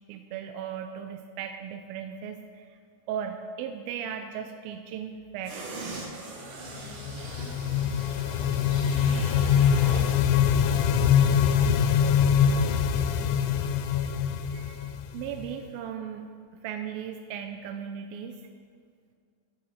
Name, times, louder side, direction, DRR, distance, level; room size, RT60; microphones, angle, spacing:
voice 1, 0.1-2.8 3.1-5.9 14.4-16.3 16.6-18.4, right 8 dB, 85° right, 5 dB, 2.4 m, -37 dB
sound 1, 5.4-10.2 10.6-10.7, right 3 dB, 65° right, 3.5 m, -41 dB
sound 2, 6.8-15.5, left 8 dB, 85° left, 1.8 m, -24 dB
voice 2, 7.0-9.4 9.7-12.0 12.3-13.1, equal, 70° left, -8 dB, 6.1 m, -42 dB
11.5 x 8.9 x 7.7 m, 2.1 s
omnidirectional pair, 4.3 m